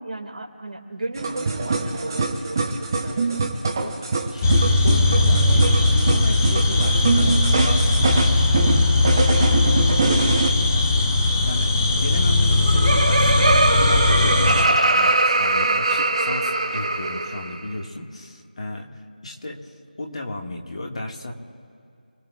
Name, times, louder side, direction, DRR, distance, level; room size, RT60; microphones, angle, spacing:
voice 1, 0.0-3.4, right 2 dB, 55° right, 1 dB, 2.4 m, -34 dB
sound 1, 1.2-10.5, right 3 dB, 25° right, 1.0 m, -24 dB
voice 2, 4.3-8.9 9.2-9.7 10.0-11.1 11.5-19.6 20.0-21.3, left 1 dB, 40° left, 1 dB, 2.0 m, -34 dB
sound 2, 4.4-14.7, left 2 dB, 15° left, 0.9 m, -19 dB
Laughter, 12.4-17.6, right 2 dB, 40° right, 1.3 m, -21 dB
28.0 x 18.0 x 2.5 m, 2.3 s
figure-of-eight pair, 165°, 5 cm